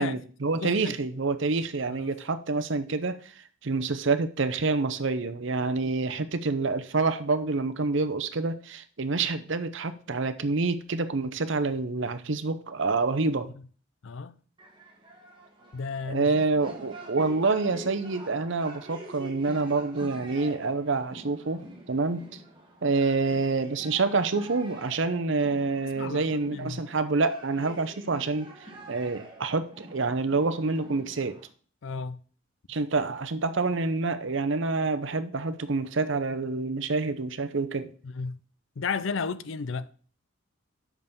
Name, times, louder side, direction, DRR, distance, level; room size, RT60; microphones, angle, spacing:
voice 1, 0.0-3.3 3.6-13.5 16.1-22.4 22.8-28.5 28.9-31.4 32.7-37.9, right 3 dB, 60° right, 0.7 m, -27 dB
voice 2, 0.6-0.9 14.0-14.3 15.7-16.4 26.0-26.8 31.8-32.2 38.0-38.4 38.8-39.9, left 5 dB, 65° left, 0.5 m, -33 dB
sound 1, 14.6-31.5, right 1 dB, 20° right, 1.4 m, -46 dB
6.1 x 5.5 x 6.9 m
head